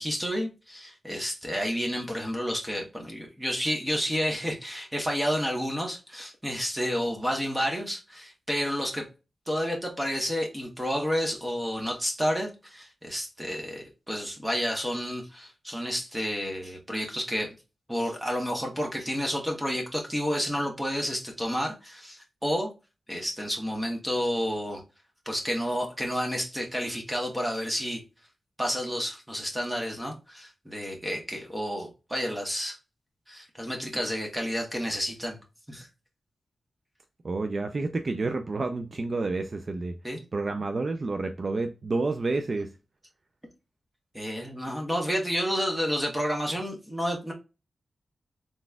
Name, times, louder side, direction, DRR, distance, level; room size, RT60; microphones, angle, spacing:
voice 1, 0.0-9.0 9.5-17.5 17.9-22.7 23.1-24.8 25.3-28.0 28.6-32.8 33.3-35.4 35.7-35.9 40.0-40.2 44.1-47.3, equal, 10° right, 1.1 m, -30 dB
voice 2, 37.2-40.0 40.3-42.7, right 3 dB, 40° right, 0.4 m, -29 dB
4.0 x 3.6 x 2.2 m
wide cardioid pair, 140°, 0 cm